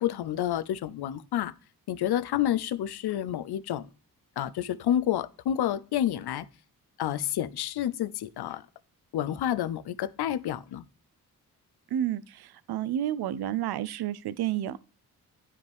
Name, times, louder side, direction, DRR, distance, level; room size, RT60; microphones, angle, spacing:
voice 1, 0.0-1.5 1.9-3.9 4.4-6.4 7.0-8.6 9.1-10.9, left 11 dB, 70° left, 0.7 m, -29 dB
voice 2, 11.9-14.8, right 11 dB, 70° right, 0.6 m, -30 dB
9.4 x 5.1 x 3.4 m
supercardioid pair, 45°, 40 cm